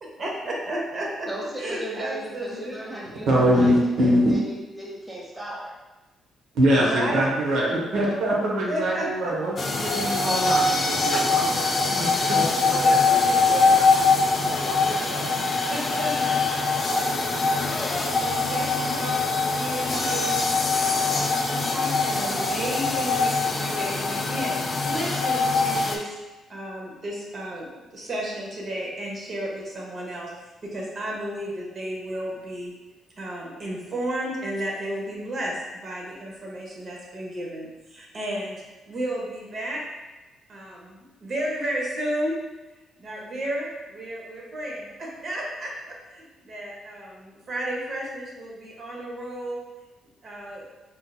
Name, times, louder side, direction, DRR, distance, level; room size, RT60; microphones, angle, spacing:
voice 1, 0.2-1.3 1.6-3.1 6.8-8.3 8.7-9.3 12.7-15.3 15.7-20.4 20.8-21.3 21.6-24.6 24.8-26.2 26.5-30.3 30.6-32.7 33.2-39.8 40.5-42.4 43.0-49.6 50.2-50.7, right 1 dB, 45° right, -3 dB, 0.9 m, -33 dB
voice 2, 1.3-5.7, right 1 dB, 10° right, -5 dB, 0.9 m, -36 dB
voice 3, 3.3-4.3 6.5-11.6 11.9-12.4, equal, 75° right, -4 dB, 0.8 m, -23 dB
sound 1, 9.6-26.0, left 3 dB, 40° left, 0.4 m, -23 dB
3.8 x 2.7 x 2.3 m, 1.1 s
cardioid pair, 90°, 0 cm